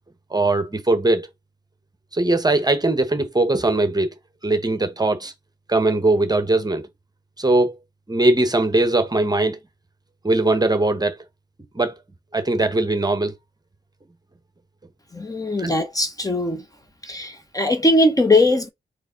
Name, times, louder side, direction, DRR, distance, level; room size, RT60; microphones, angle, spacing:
voice 1, 0.3-1.3 2.1-4.1 4.4-5.3 5.7-6.9 7.4-7.8 8.1-9.6 10.2-11.2 11.7-11.9 12.3-13.3 15.6-15.8, right 2 dB, 20° right, 1.0 m, -20 dB
voice 2, 15.1-16.6 17.0-18.7, left 1 dB, 20° left, 0.9 m, -20 dB
3.9 x 3.1 x 3.8 m
cardioid pair, 70°, 19 cm